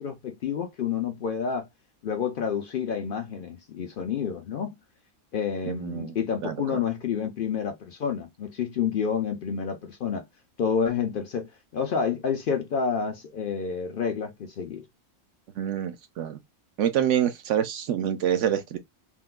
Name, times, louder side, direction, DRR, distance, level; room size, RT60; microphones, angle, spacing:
voice 1, 0.0-1.7 2.0-4.8 5.3-10.2 10.6-14.8, left 6 dB, 60° left, 0.5 m, -29 dB
voice 2, 5.6-6.2 6.4-6.8 15.6-16.4 16.8-18.8, right 10 dB, 65° right, 0.9 m, -27 dB
3.6 x 2.3 x 2.3 m
omnidirectional pair, 1.5 m